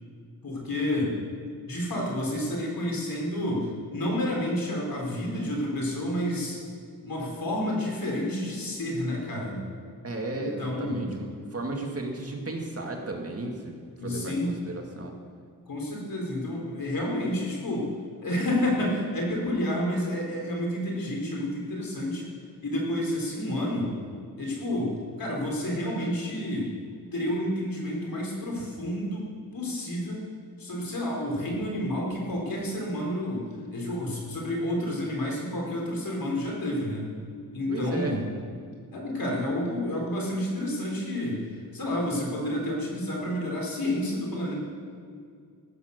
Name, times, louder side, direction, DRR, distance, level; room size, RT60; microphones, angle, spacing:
voice 1, 0.4-1.1 1.6-6.6 7.0-9.6 10.3-11.1 14.0-14.5 15.7-17.9 18.2-22.3 22.6-23.9 24.4-26.7 27.1-30.2 30.6-33.5 33.7-37.0 37.5-38.3 38.9-41.4 41.7-44.5, left 1 dB, 70° left, -2 dB, 4.0 m, -30 dB
voice 2, 10.0-13.8 14.0-15.1 37.7-38.2, right 2 dB, 40° right, 1 dB, 2.0 m, -34 dB
15.0 x 8.4 x 6.6 m, 2.2 s
wide cardioid pair, 90°, 36 cm